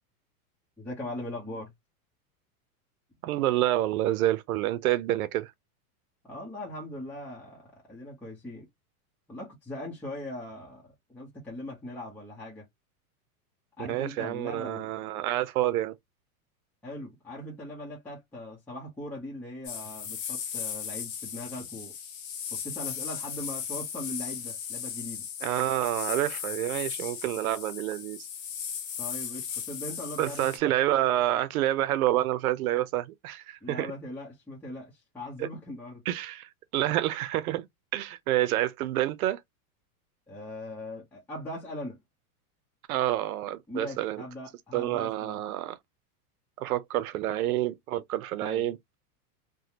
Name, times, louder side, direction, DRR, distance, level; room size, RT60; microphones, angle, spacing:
voice 1, 0.8-1.7 6.2-8.7 9.3-12.6 13.8-14.9 16.8-21.9 22.6-25.3 29.0-30.5 33.6-36.0 40.3-42.0 43.7-45.4 48.4-48.7, left 1 dB, 5° left, 0.8 m, -40 dB
voice 2, 3.2-5.5 13.8-15.9 25.4-28.3 30.2-33.9 35.4-35.5 36.1-37.7 37.9-39.4 42.9-44.2 44.7-45.8 46.6-48.8, right 14 dB, 75° right, 0.7 m, -28 dB
sound 1, 19.6-30.6, left 8 dB, 20° left, 0.4 m, -37 dB
3.4 x 2.2 x 2.8 m
supercardioid pair, 160°, 44 cm